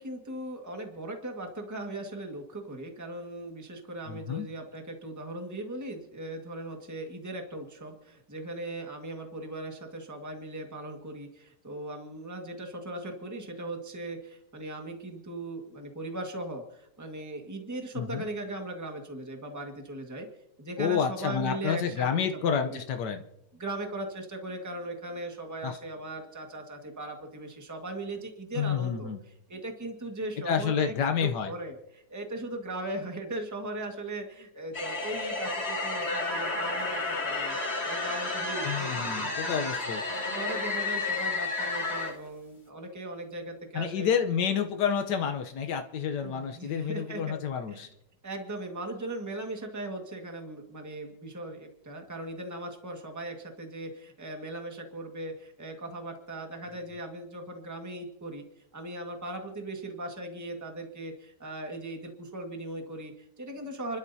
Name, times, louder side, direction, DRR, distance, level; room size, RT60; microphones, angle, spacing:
voice 1, 0.0-20.3 20.6-22.8 23.6-30.9 31.2-39.7 40.3-44.1 46.2-47.4 47.7-47.8 48.2-58.5 58.7-64.0, right 1 dB, 10° right, 3 dB, 1.6 m, -38 dB
voice 2, 4.1-4.5 18.0-18.3 20.8-23.2 25.6-25.8 28.6-29.2 30.4-31.5 38.6-40.0 43.7-47.9, left 7 dB, 85° left, 6 dB, 1.5 m, -29 dB
sound 1, 34.7-42.1, left 3 dB, 40° left, 2.6 m, -31 dB
30.0 x 12.5 x 2.8 m, 0.81 s
omnidirectional pair, 1.8 m